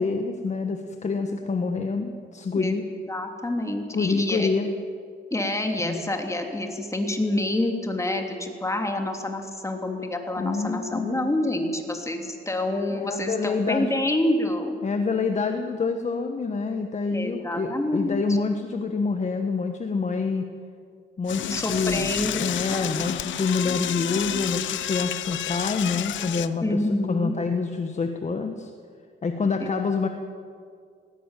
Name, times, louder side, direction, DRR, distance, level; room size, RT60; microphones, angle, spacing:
voice 1, 0.0-2.8 3.9-4.7 5.8-6.0 10.4-11.3 12.9-13.9 14.8-20.5 21.2-22.0 22.4-28.7 29.2-30.1, left 4 dB, 35° left, 5 dB, 1.4 m, -27 dB
voice 2, 3.1-4.5 5.3-14.8 17.1-18.2 21.5-23.1 26.6-27.3 29.6-29.7, left 1 dB, 15° left, 3 dB, 3.2 m, -27 dB
Door / Toilet flush, 21.3-26.5, left 12 dB, 70° left, 0.8 m, -30 dB
19.0 x 17.5 x 9.1 m, 2.2 s
cardioid pair, 90°, 20 cm